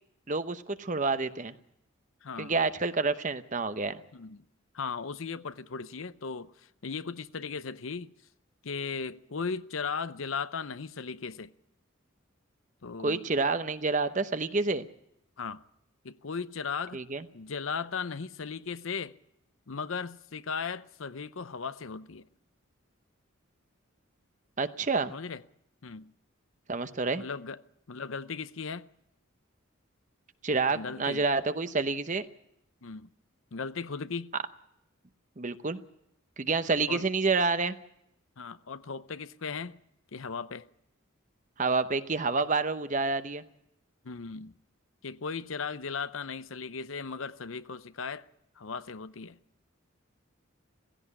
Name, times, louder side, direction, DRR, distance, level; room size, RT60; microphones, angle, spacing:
voice 1, 0.3-1.5 2.4-4.0 13.0-14.9 16.9-17.2 24.6-25.1 26.7-27.2 30.4-32.2 35.4-35.8 36.4-37.8 41.6-43.4, right 3 dB, 35° right, 0.8 m, -28 dB
voice 2, 2.2-2.6 4.1-4.4 4.7-8.1 8.6-11.5 12.8-13.2 15.4-15.6 16.0-17.0 17.3-19.2 19.7-22.3 25.1-25.4 25.8-26.1 27.1-27.6 27.9-28.9 30.7-31.3 32.8-33.1 33.5-34.3 36.9-37.0 38.4-39.8 40.1-40.7 44.0-44.5 45.0-48.3 48.6-49.4, left 5 dB, 70° left, 0.7 m, -37 dB
16.5 x 16.0 x 9.9 m
head